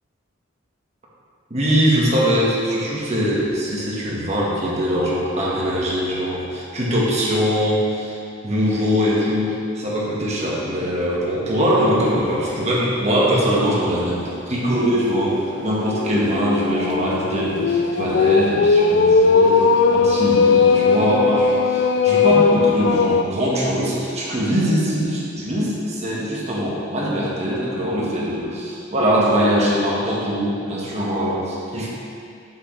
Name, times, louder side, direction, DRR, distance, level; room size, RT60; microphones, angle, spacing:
voice 1, 1.5-8.2 8.4-19.6 19.9-31.9, equal, 35° right, -6 dB, 1.6 m, -22 dB
sound 1, 11.8-12.2 12.6-12.7 13.1-13.2 15.3-23.2, left 4 dB, 60° left, 0.3 m, -18 dB
8.0 x 7.6 x 3.3 m, 2.6 s
head